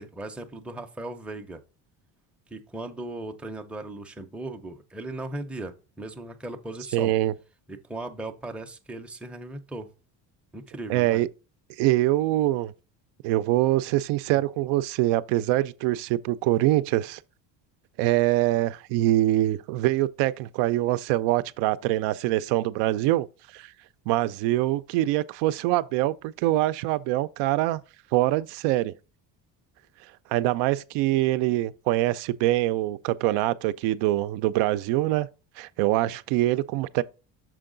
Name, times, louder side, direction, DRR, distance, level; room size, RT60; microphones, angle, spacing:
voice 1, 0.0-1.6 2.5-7.1 7.7-9.9 10.5-11.2, right 2 dB, 5° right, 0.5 m, -37 dB
voice 2, 6.9-7.3 10.9-11.3 11.8-12.7 13.2-17.2 18.0-23.3 23.5-23.7 24.1-27.8 28.1-28.9 30.3-35.3 35.6-37.0, right 15 dB, 90° right, 0.5 m, -24 dB
6.3 x 4.6 x 3.8 m
cardioid pair, 130°, 41 cm